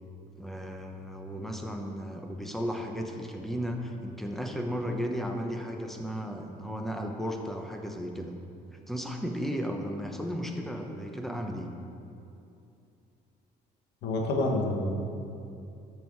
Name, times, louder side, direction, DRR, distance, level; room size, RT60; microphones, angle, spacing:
voice 1, 0.4-8.3 8.7-11.7, equal, ahead, 3 dB, 0.9 m, -34 dB
voice 2, 14.0-14.9, left 2 dB, 85° left, 1 dB, 1.4 m, -28 dB
13.0 x 4.8 x 4.7 m, 2.7 s
cardioid pair, 110°, 17 cm